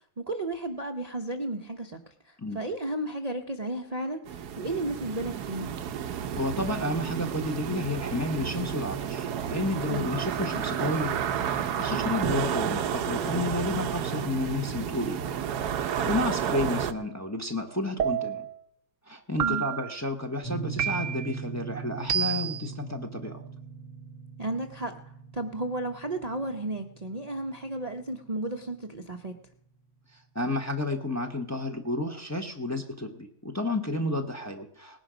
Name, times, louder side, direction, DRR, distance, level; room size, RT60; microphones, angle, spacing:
voice 1, 0.2-5.7 9.9-10.1 11.9-12.1 19.4-19.6 24.4-25.0 25.3-29.5, right 2 dB, 30° right, 4 dB, 0.8 m, -33 dB
sound 1, 4.3-16.9, right 8 dB, 85° right, 1.3 m, -31 dB
voice 2, 6.4-11.1 11.5-15.2 15.8-18.5 19.1-23.4 30.3-35.0, left 2 dB, 10° left, 3 dB, 1.0 m, -31 dB
sound 2, 18.0-18.6 19.4-20.0 20.8-21.4 22.1-22.7, right 9 dB, 60° right, 1.0 m, -29 dB
sound 3, 20.4-29.1, right 6 dB, 50° left, 4.2 m, -41 dB
19.0 x 10.5 x 5.1 m, 0.77 s
omnidirectional pair, 1.7 m